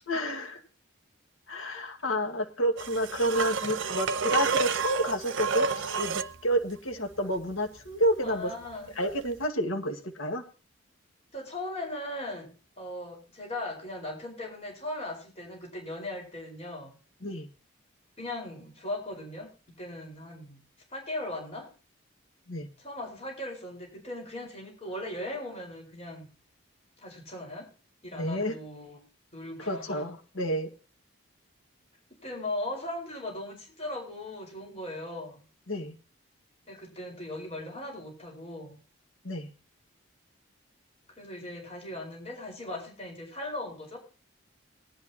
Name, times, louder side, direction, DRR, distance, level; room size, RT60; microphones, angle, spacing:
voice 1, 0.1-0.6 1.5-8.6 9.0-10.4 17.2-17.5 22.5-22.7 28.1-28.6 29.6-30.7 35.7-36.0 39.2-39.5, equal, 75° left, 4 dB, 1.9 m, -30 dB
sound 1, 2.8-6.4 9.3-9.4, right 5 dB, 65° right, 0.8 m, -29 dB
voice 2, 8.2-8.9 11.3-16.9 18.2-20.6 20.9-21.7 22.8-26.3 27.0-27.7 28.0-29.0 29.3-30.0 32.2-35.4 36.7-38.8 41.2-44.0, left 1 dB, 30° left, -1 dB, 4.7 m, -38 dB
19.5 x 11.0 x 2.9 m, 0.34 s
head